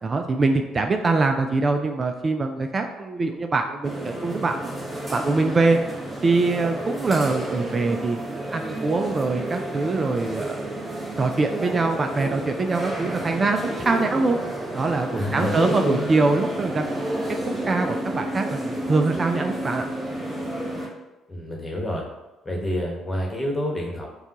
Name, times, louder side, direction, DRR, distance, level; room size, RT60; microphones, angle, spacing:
voice 1, 0.0-4.7 5.1-5.8 6.2-10.7 11.2-14.4 14.7-17.2 17.6-19.8, right 3 dB, 35° right, 5 dB, 0.3 m, -23 dB
sound 1, 3.8-20.9, right 1 dB, 10° right, 1.2 m, -31 dB
voice 2, 15.1-16.1 21.3-22.0 22.4-24.1, left 1 dB, 20° left, -1 dB, 1.2 m, -27 dB
5.5 x 2.3 x 2.9 m, 1.1 s
hypercardioid pair, 60°, 0 cm